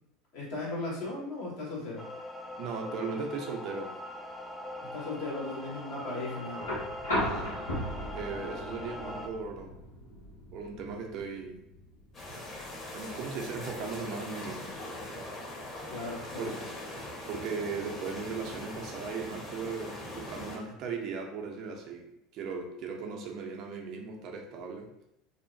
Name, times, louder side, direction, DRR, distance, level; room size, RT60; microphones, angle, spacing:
voice 1, 0.3-2.1 4.8-6.7 15.9-16.5, left 2 dB, 70° left, -7 dB, 1.4 m, -37 dB
sound 1, 2.0-9.3, left 1 dB, 10° left, 0.4 m, -42 dB
voice 2, 2.6-4.0 7.1-7.6 8.1-9.7 10.5-11.6 12.9-14.7 16.4-16.6 17.3-22.1 22.3-24.9, right 5 dB, 55° right, 2 dB, 0.5 m, -37 dB
sound 2, 6.6-14.6 16.0-16.1, left 1 dB, 90° left, 0.8 m, -38 dB
sound 3, 12.1-20.6, left 1 dB, 35° left, 1.1 m, -41 dB
2.7 x 2.1 x 2.6 m, 0.80 s
hypercardioid pair, 75°, 0 cm